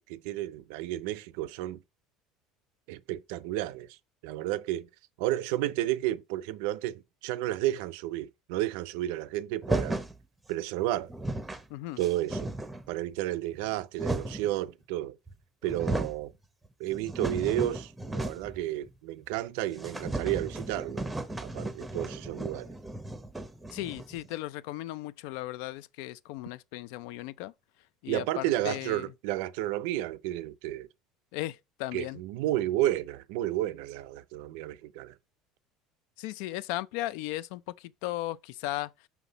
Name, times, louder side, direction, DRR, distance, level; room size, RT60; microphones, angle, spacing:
voice 1, 0.0-1.8 2.9-4.0 4.2-4.9 5.2-10.0 10.5-11.1 12.0-12.5 12.9-15.2 15.6-16.3 16.8-21.0 21.4-22.7 28.1-30.9 31.9-35.1, right 14 dB, 75° right, 0.5 m, -32 dB
sound 1, 9.6-10.2 10.8-10.9 11.1-11.6 12.0-12.9 13.6-14.5 15.3-15.4 15.6-16.2 16.6-18.6 18.9-19.0 19.3-19.4 19.8-24.3, right 2 dB, 5° right, 0.6 m, -35 dB
voice 2, 23.7-27.5 28.0-29.1 31.3-32.2 36.2-38.9, left 16 dB, 70° left, 0.4 m, -36 dB
5.8 x 5.8 x 3.9 m
cardioid pair, 170°, 0 cm